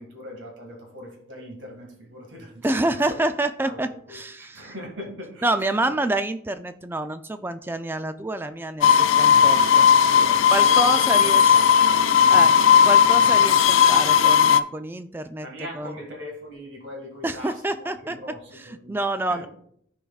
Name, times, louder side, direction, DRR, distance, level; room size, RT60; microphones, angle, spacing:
voice 1, 0.0-3.0 3.6-3.8 4.1-5.5 10.2-11.7 12.1-12.3 15.4-19.0 19.3-19.5, equal, 65° right, 1 dB, 1.9 m, -40 dB
voice 2, 2.6-4.7 5.4-10.1 10.5-11.6 12.3-15.5 15.7-16.0 17.2-18.2 18.5-19.5, right 2 dB, 10° right, 9 dB, 0.3 m, -28 dB
sound 1, 8.8-14.6, left 7 dB, 70° left, 0.4 m, -16 dB
14.0 x 4.8 x 2.3 m, 0.69 s
head